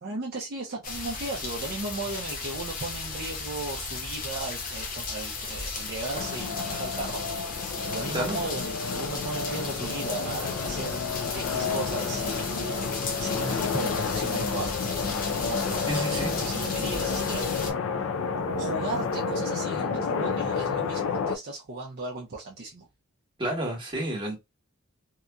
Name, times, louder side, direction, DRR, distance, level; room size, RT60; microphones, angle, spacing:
voice 1, 0.0-7.2 7.9-11.0 11.3-14.8 15.4-17.5 18.6-22.9, right 2 dB, 50° right, 0.5 m, -36 dB
sound 1, 0.8-17.7, left 4 dB, 45° left, 0.7 m, -35 dB
sound 2, 6.1-21.4, left 5 dB, 80° left, 0.4 m, -30 dB
voice 2, 15.9-16.5 23.4-24.4, right 1 dB, 25° right, 1.1 m, -30 dB
2.8 x 2.4 x 2.2 m
head